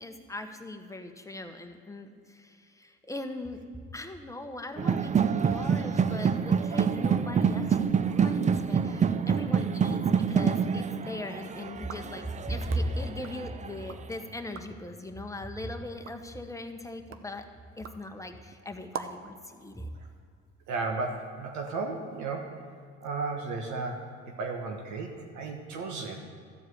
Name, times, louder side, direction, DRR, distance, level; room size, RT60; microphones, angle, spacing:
voice 1, 0.0-3.6 3.9-17.5 17.8-19.9, left 1 dB, 10° left, 6 dB, 1.0 m, -38 dB
sound 1, 4.8-13.7, right 6 dB, 25° right, 0.4 m, -27 dB
sound 2, 11.8-14.1 14.4-14.9 15.4-19.4, right 7 dB, 45° right, 0.8 m, -46 dB
voice 2, 20.7-22.6 23.0-26.2, right 3 dB, 75° right, 2 dB, 1.3 m, -34 dB
13.5 x 4.7 x 8.1 m, 2.2 s
supercardioid pair, 80°, 30 cm